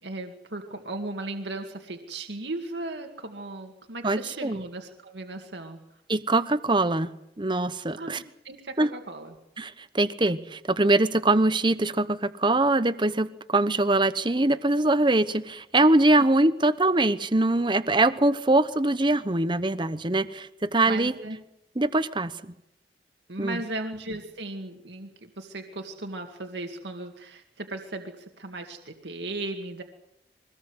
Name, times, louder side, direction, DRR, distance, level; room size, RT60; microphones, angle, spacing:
voice 1, 0.0-5.8 8.0-9.4 16.1-16.3 20.9-21.4 23.3-29.8, right 2 dB, 75° right, 4 dB, 2.2 m, -36 dB
voice 2, 4.0-4.6 6.1-7.1 7.4-8.2 8.8-8.9 9.6-21.1 21.8-22.3 23.4-23.6, right 2 dB, 25° right, 13 dB, 1.0 m, -23 dB
23.0 x 18.5 x 8.1 m, 0.86 s
head